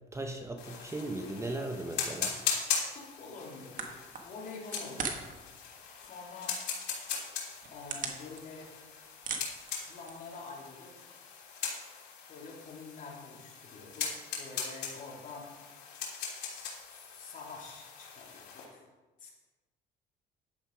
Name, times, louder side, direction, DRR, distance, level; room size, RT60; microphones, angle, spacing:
voice 1, 0.1-2.4, right 2 dB, 15° right, 4 dB, 1.1 m, -37 dB
sound 1, 0.6-18.7, left 6 dB, 80° left, 3.1 m, -40 dB
voice 2, 2.9-5.5 6.0-6.6 7.7-8.7 9.8-11.1 12.3-15.5 16.4-18.9 19.2-19.3, left 4 dB, 50° left, -3 dB, 3.7 m, -47 dB
sound 2, 3.8-5.4 5.7-6.3 6.8-6.9 7.4-8.8 9.1-10.4, right 5 dB, 50° right, 1.7 m, -39 dB
11.0 x 8.1 x 5.0 m, 1.2 s
cardioid pair, 110°, 17 cm